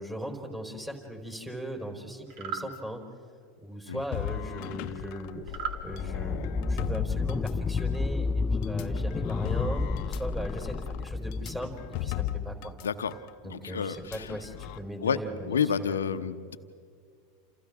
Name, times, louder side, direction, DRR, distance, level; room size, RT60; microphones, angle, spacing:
voice 1, 0.0-3.0 3.6-5.6 5.8-11.7 12.0-12.7 13.4-16.1, equal, 10° right, 2 dB, 4.3 m, -38 dB
sound 1, 2.3-2.7 5.5-5.8, right 8 dB, 60° right, 2.6 m, -35 dB
sound 2, 4.1-8.0 8.6-12.9 13.1-13.3 13.9-14.8, left 13 dB, 55° left, 0.8 m, -37 dB
sound 3, 5.9-12.3, left 4 dB, 20° left, 0.6 m, -31 dB
voice 2, 12.8-13.1 13.4-14.3 15.0-15.2 15.4-16.6, left 7 dB, 85° left, 10 dB, 0.9 m, -29 dB
29.0 x 28.5 x 3.7 m, 2.2 s
hypercardioid pair, 90°, 0 cm